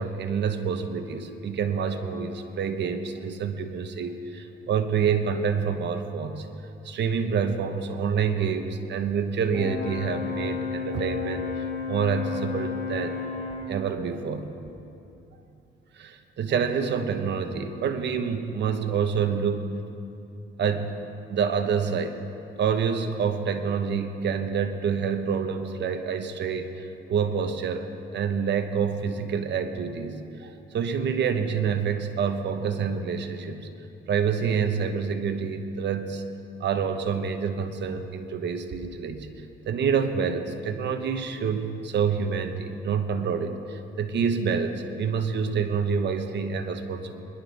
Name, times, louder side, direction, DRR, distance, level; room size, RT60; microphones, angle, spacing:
voice 1, 0.0-6.5 6.8-13.2 13.7-14.5 15.9-19.7 20.6-20.9 21.3-22.2 22.6-27.9 28.1-33.7 34.1-36.2 36.6-39.3 39.7-47.2, right 6 dB, 60° right, 7 dB, 1.0 m, -27 dB
Brass instrument, 9.5-13.8, left 5 dB, 70° left, 2.4 m, -32 dB
21.0 x 11.5 x 3.5 m, 2.7 s
cardioid pair, 90°, 20 cm